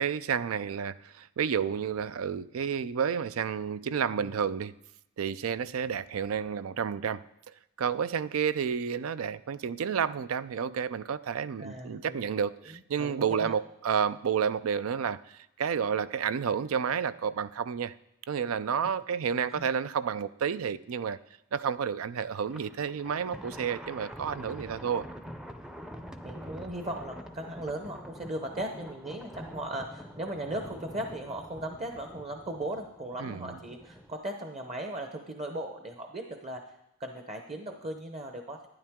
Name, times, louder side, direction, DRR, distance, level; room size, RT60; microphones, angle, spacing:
voice 1, 0.0-4.7 5.2-7.2 7.8-17.9 18.3-21.2 21.5-25.1 33.2-33.6, right 7 dB, 75° right, 16 dB, 0.4 m, -30 dB
voice 2, 11.6-12.3 13.0-13.6 19.4-19.7 26.2-36.6 37.0-38.7, right 1 dB, 30° right, 4 dB, 0.8 m, -38 dB
Thunder, 22.4-34.1, equal, 5° right, 0.5 m, -45 dB
12.0 x 10.0 x 3.6 m, 0.85 s
head